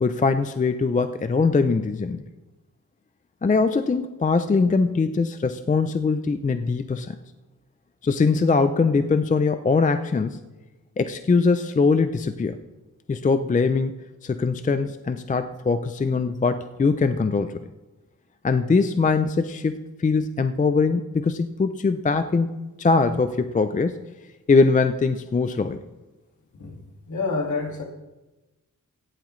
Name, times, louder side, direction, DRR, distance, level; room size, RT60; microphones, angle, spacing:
voice 1, 0.0-2.2 3.4-7.2 8.0-10.4 11.0-12.6 13.1-13.9 14.2-17.6 18.4-22.5 22.8-24.0 24.5-25.8, left 4 dB, 25° left, 10 dB, 0.4 m, -22 dB
voice 2, 27.1-27.8, left 4 dB, 60° left, 1 dB, 2.1 m, -28 dB
17.0 x 11.5 x 3.2 m, 1.1 s
wide cardioid pair, 175°, 34 cm